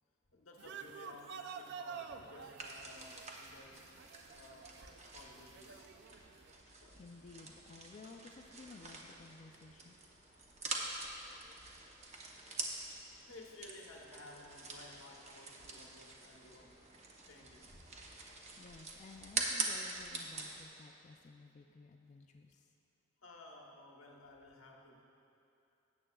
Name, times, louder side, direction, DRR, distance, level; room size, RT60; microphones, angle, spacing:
voice 1, 0.3-3.9 4.3-4.7 5.1-5.9 6.8-7.0 13.1-16.8 17.3-17.8 23.2-25.0, left 2 dB, 90° left, 0 dB, 1.1 m, -56 dB
sound 1, 0.6-6.5, right 6 dB, 55° right, 0.4 m, -50 dB
sound 2, 2.6-20.6, right 3 dB, 35° right, 0.8 m, -45 dB
voice 2, 6.6-10.0 18.6-22.7, left 3 dB, 35° left, 2 dB, 0.3 m, -55 dB
13.5 x 8.7 x 2.3 m, 2.8 s
head